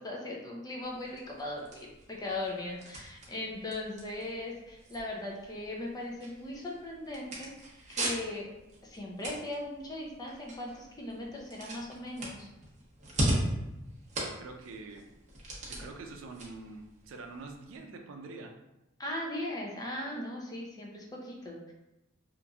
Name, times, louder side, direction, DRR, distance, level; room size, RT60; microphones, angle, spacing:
voice 1, 0.0-8.5 8.8-12.5 19.0-21.7, left 1 dB, 20° left, -2 dB, 0.5 m, -39 dB
sound 1, 0.8-17.8, right 1 dB, 35° right, 0.7 m, -39 dB
voice 2, 14.2-15.0 15.7-18.5, right 3 dB, 85° right, 3 dB, 0.4 m, -45 dB
2.9 x 2.5 x 2.3 m, 0.95 s
head